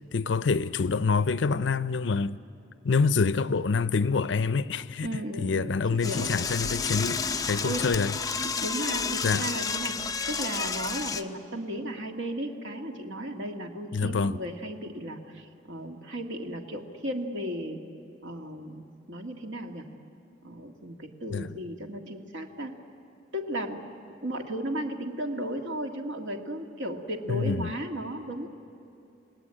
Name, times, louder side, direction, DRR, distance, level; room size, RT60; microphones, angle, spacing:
voice 1, 0.1-2.4 2.8-5.1 5.4-7.2 7.5-8.2 9.2-9.5 13.9-14.4 21.3-21.5 27.3-27.7, left 4 dB, 75° left, 0.6 m, -26 dB
voice 2, 5.0-6.4 7.6-7.9 8.6-17.8 18.2-19.9 20.4-22.8 23.3-23.8 24.2-28.5, right 1 dB, 75° right, 2.0 m, -35 dB
Door / Toilet flush, 6.0-11.2, left 5 dB, 20° left, 0.7 m, -31 dB
30.0 x 18.5 x 8.9 m
head